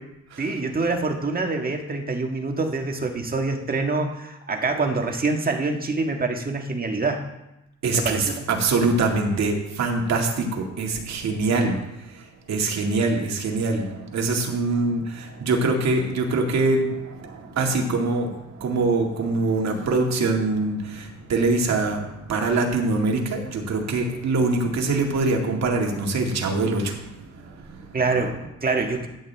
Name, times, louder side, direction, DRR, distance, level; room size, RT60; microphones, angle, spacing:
voice 1, 0.4-7.3 7.9-8.3 11.5-11.7 27.9-29.1, right 3 dB, 30° right, 3 dB, 1.6 m, -25 dB
voice 2, 7.8-11.8 12.1-27.9, right 3 dB, 60° right, 1 dB, 2.1 m, -24 dB
13.5 x 8.9 x 3.4 m, 0.92 s
cardioid pair, 90°, 30 cm